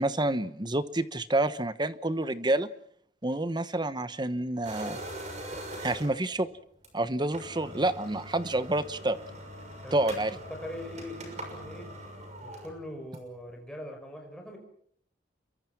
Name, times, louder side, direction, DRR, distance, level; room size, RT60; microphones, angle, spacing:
voice 1, 0.0-2.7 3.2-5.0 5.8-6.5 6.9-9.2 9.9-10.3, right 2 dB, 25° right, 14 dB, 1.1 m, -28 dB
sound 1, 4.6-6.3 6.8-6.9 7.2-13.4, right 1 dB, 40° right, 6.5 m, -42 dB
voice 2, 9.8-11.9 12.4-14.6, left 1 dB, 5° left, 2 dB, 5.8 m, -42 dB
27.5 x 23.0 x 6.1 m, 0.64 s
head